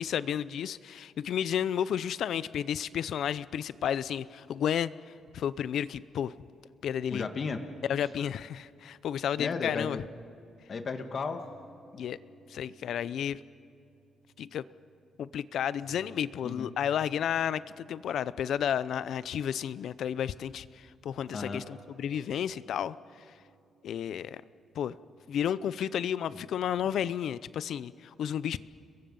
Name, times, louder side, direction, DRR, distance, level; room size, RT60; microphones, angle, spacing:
voice 1, 0.0-4.9 5.3-6.3 6.8-7.2 7.9-10.0 12.0-12.2 12.5-13.4 14.4-14.6 15.2-23.0 23.8-24.4 24.7-25.0 25.3-28.6, left 9 dB, 70° left, 17 dB, 0.6 m, -32 dB
voice 2, 7.1-7.6 9.4-10.0 10.7-11.4 16.4-16.7 21.3-21.6 26.3-26.4 26.8-26.9, left 4 dB, 40° left, 7 dB, 1.7 m, -34 dB
sound 1, 11.4-19.9 20.2-20.4 21.3-27.8, right 3 dB, 80° right, 4.9 m, -60 dB
30.0 x 22.0 x 5.4 m, 2.5 s
cardioid pair, 125°, 0 cm